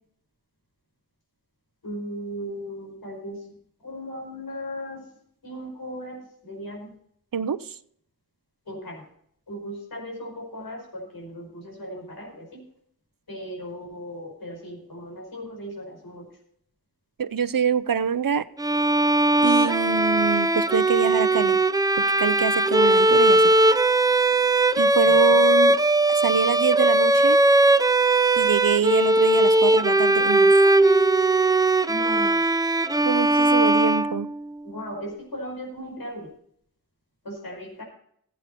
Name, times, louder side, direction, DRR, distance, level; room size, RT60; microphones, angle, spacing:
voice 1, 1.8-3.5 3.8-5.1 5.4-6.9 8.7-9.0 9.5-12.6 13.3-16.3 25.0-25.2 30.6-30.8 31.9-32.3 34.6-36.3 37.2-37.8, equal, 85° left, 0 dB, 5.2 m, -37 dB
voice 2, 7.3-7.8 17.2-18.5 19.4-21.6 22.0-23.4 23.7-23.8 24.8-25.8 26.2-27.4 28.4-30.6 33.0-34.3, right 7 dB, 70° right, 15 dB, 0.7 m, -25 dB
Bowed string instrument, 18.6-34.6, right 2 dB, 10° right, 0.4 m, -19 dB
16.0 x 8.5 x 4.2 m, 0.66 s
wide cardioid pair, 65°, 36 cm